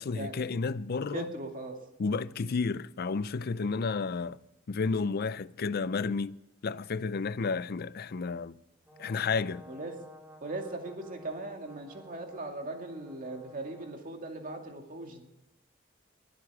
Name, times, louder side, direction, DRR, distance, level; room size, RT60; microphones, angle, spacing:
voice 1, 0.0-1.3 2.0-4.4 4.7-6.3 6.6-8.6 9.0-9.6, left 4 dB, 50° left, 0.5 m, -31 dB
voice 2, 1.1-1.9 9.7-10.0 10.4-15.3, right 2 dB, 45° right, 2.3 m, -39 dB
Brass instrument, 8.9-14.0, left 1 dB, 10° right, 2.1 m, -53 dB
21.5 x 8.1 x 4.9 m
head